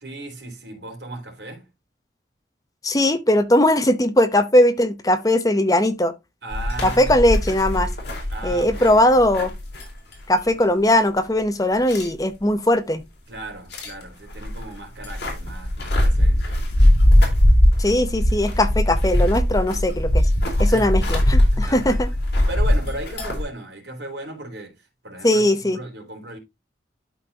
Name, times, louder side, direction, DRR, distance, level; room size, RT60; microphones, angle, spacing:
voice 1, 0.0-1.7 6.4-7.2 8.3-9.2 13.3-16.7 20.7-21.0 21.5-22.0 22.5-26.4, right 1 dB, 75° right, 3.4 m, -36 dB
voice 2, 2.8-6.1 6.8-7.9 8.4-9.5 10.3-13.0 17.8-20.3 20.6-22.1 25.2-25.8, left 1 dB, 20° left, 0.7 m, -19 dB
sound 1, 6.5-10.2 10.5-10.6 11.9-12.1 13.7-14.0 14.3-23.4, left 1 dB, 65° left, 3.4 m, -20 dB
12.0 x 4.2 x 2.8 m
head